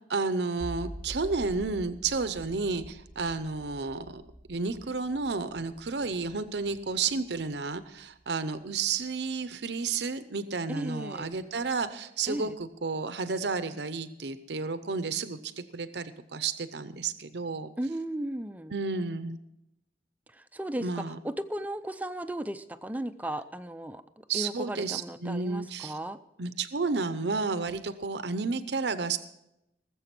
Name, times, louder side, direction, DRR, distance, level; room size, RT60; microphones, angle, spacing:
voice 1, 0.1-4.2 4.5-17.7 18.7-19.4 20.8-21.2 24.3-25.9 26.4-29.2, right 4 dB, 70° right, 12 dB, 0.7 m, -31 dB
sound 1, 0.6-7.8, right 1 dB, 65° left, 2.7 m, -46 dB
voice 2, 10.7-11.3 12.3-12.6 17.8-18.7 20.3-26.2, right 1 dB, 10° right, 10 dB, 0.5 m, -36 dB
19.0 x 7.7 x 6.0 m, 0.85 s
head